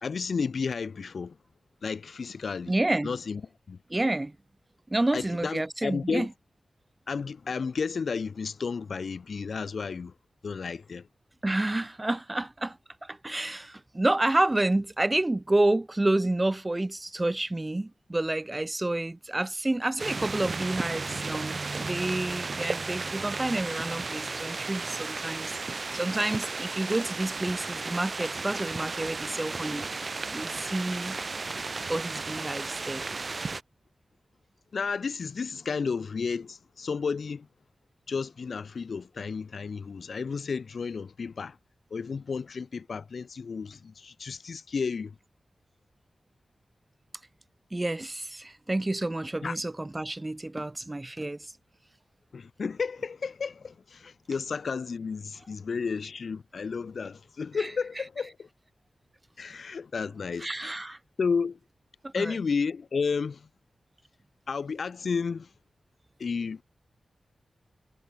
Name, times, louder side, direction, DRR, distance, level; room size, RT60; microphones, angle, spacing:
voice 1, 0.0-1.4 1.8-2.7 3.0-3.4 3.7-3.8 5.1-6.3 7.1-10.1 10.4-11.1 34.7-37.5 38.1-41.6 41.9-45.1 49.4-49.6 52.3-58.5 59.4-60.8 61.2-61.6 62.1-63.5 64.5-65.5 66.2-66.6, left 5 dB, 70° left, 2.0 m, -32 dB
voice 2, 2.7-3.1 3.9-4.4 4.9-6.3 11.4-29.8 30.3-31.2 31.9-33.1 47.7-51.5 57.6-57.7 60.4-61.0 62.0-62.4, right 2 dB, 25° right, 1.1 m, -29 dB
sound 1, 20.0-33.6, right 3 dB, 50° right, 1.6 m, -34 dB
cardioid pair, 50°, 0 cm